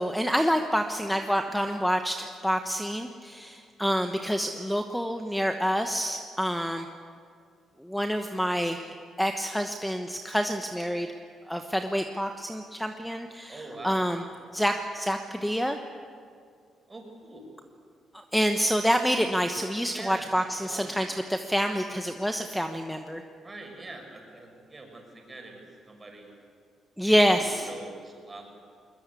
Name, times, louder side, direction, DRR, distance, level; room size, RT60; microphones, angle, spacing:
voice 1, 0.0-6.9 7.8-11.1 11.5-14.2 14.5-15.8 18.3-23.2 27.0-27.7, equal, ahead, 6 dB, 1.1 m, -27 dB
voice 2, 13.5-14.3 16.9-17.4 19.9-20.3 20.6-20.9 23.4-26.3 27.0-28.5, right 2 dB, 25° right, 2 dB, 6.4 m, -44 dB
21.5 x 21.5 x 8.3 m, 2.2 s
cardioid pair, 90°, 0 cm